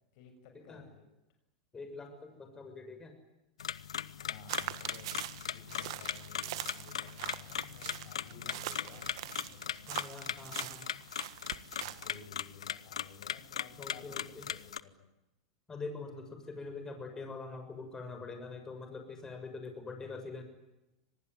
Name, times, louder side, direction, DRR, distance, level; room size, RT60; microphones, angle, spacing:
voice 1, 0.1-1.1 4.2-5.1 5.4-10.5 11.8-14.2 14.5-14.9, left 5 dB, 60° left, 6 dB, 6.8 m, -55 dB
voice 2, 1.7-3.1 9.9-10.8 13.8-14.4 15.7-20.4, left 3 dB, 20° left, 6 dB, 6.6 m, -44 dB
sound 1, 3.6-14.8, left 9 dB, 85° left, 0.8 m, -39 dB
sound 2, 4.5-12.2, right 15 dB, 70° right, 1.6 m, -43 dB
25.5 x 19.5 x 9.6 m, 0.95 s
hypercardioid pair, 100°, 3 cm